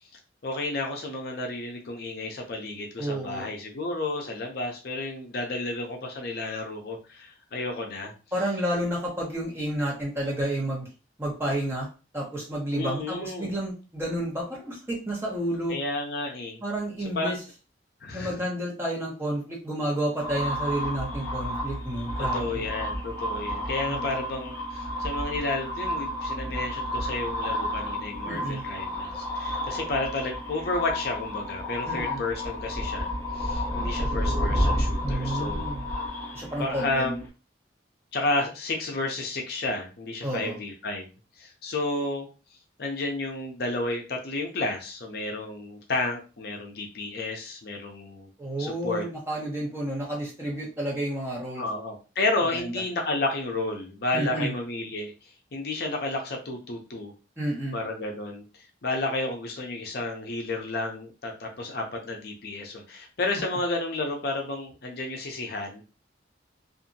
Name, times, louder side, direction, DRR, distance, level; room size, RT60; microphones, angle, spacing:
voice 1, 0.4-8.1 12.7-13.6 15.7-16.6 17.2-17.4 18.0-18.4 22.2-35.6 36.6-37.2 38.1-41.1 41.4-42.3 42.8-48.3 48.6-49.1 51.6-57.1 57.7-65.8, left 2 dB, 55° left, 2 dB, 0.5 m, -31 dB
voice 2, 3.0-3.5 8.3-10.9 11.2-11.9 12.1-15.8 16.6-17.4 18.1-22.6 23.9-24.2 28.2-28.6 31.9-32.2 35.0-35.8 36.3-37.1 40.2-40.6 48.4-51.6 52.5-52.7 54.1-54.5 57.4-57.8, right 1 dB, 15° right, -4 dB, 1.0 m, -30 dB
sound 1, 20.2-37.3, left 1 dB, 10° left, 1.2 m, -31 dB
2.7 x 2.4 x 2.6 m, 0.32 s
head